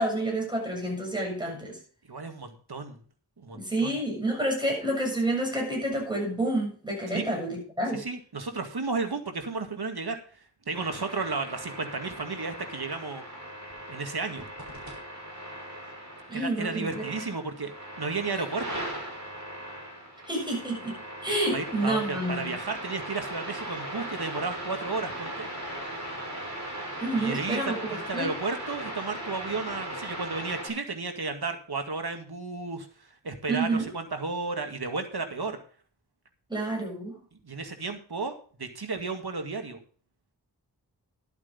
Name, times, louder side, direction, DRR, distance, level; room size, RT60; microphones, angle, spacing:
voice 1, 0.0-1.8 3.5-8.0 16.3-17.0 20.3-22.6 27.0-27.7 28.1-28.3 33.5-33.9 36.5-37.2, right 1 dB, 10° right, 0 dB, 7.2 m, -29 dB
voice 2, 2.1-3.0 3.4-4.0 7.1-7.2 7.9-10.2 10.7-13.2 13.9-14.5 16.3-17.7 18.0-18.8 21.5-25.5 27.2-32.9 33.2-35.6 37.3-39.8, right 4 dB, 65° right, 6 dB, 2.1 m, -33 dB
sound 1, 10.7-30.7, right 1 dB, 45° right, 5.8 m, -38 dB
11.5 x 8.2 x 5.4 m, 0.43 s
wide cardioid pair, 40°, 40 cm